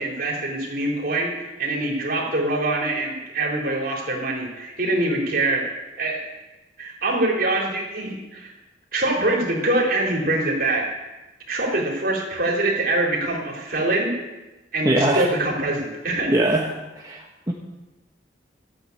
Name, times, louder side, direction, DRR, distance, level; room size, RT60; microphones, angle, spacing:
voice 1, 0.0-5.6 6.0-6.2 6.8-8.5 8.9-10.9 11.5-14.1 14.7-16.3, right 2 dB, 50° right, -2 dB, 3.7 m, -24 dB
voice 2, 14.8-15.3 16.3-16.7 17.0-17.5, right 1 dB, 20° right, -2 dB, 1.3 m, -21 dB
13.5 x 9.0 x 8.4 m, 1.1 s
head